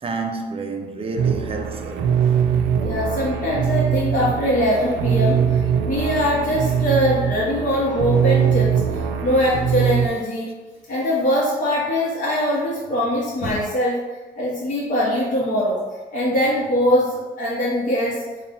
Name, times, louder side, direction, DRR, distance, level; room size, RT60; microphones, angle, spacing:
voice 1, 0.0-2.1, right 3 dB, 30° right, 0.5 m, -29 dB
sound 1, 1.2-10.1, right 8 dB, 90° right, 0.4 m, -22 dB
voice 2, 2.8-10.5 10.9-14.0 14.4-15.8 16.1-18.2, equal, 40° left, 1.0 m, -22 dB
4.0 x 2.4 x 3.7 m
cardioid pair, 90°, 20 cm